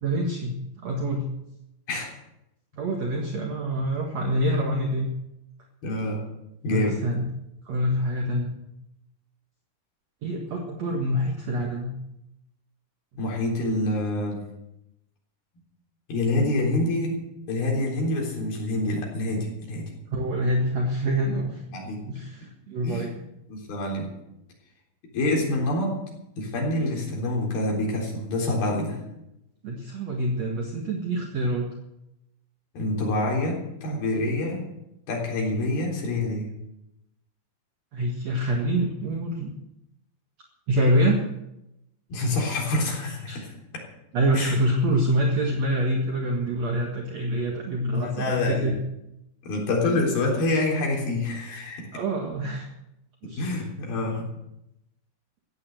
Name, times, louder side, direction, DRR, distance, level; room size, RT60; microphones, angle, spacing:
voice 1, 0.0-1.2 2.8-5.1 6.7-7.2 7.7-8.5 10.2-11.9 20.1-21.6 22.0-23.2 29.6-31.7 37.9-39.5 40.7-41.2 43.3-43.4 44.1-48.8 51.9-52.7 53.2-53.5, right 1 dB, 55° right, 1 dB, 2.5 m, -26 dB
voice 2, 5.8-6.2 6.6-7.0 13.2-14.4 16.1-17.2 17.5-19.9 21.7-22.0 22.8-23.1 23.5-24.1 25.1-25.9 26.4-29.0 32.8-34.6 35.1-36.5 42.1-43.5 44.4-44.6 47.9-48.8 49.4-52.0 53.2-54.3, left 2 dB, 80° left, -1 dB, 5.6 m, -26 dB
15.0 x 9.9 x 7.8 m, 0.87 s
omnidirectional pair, 4.3 m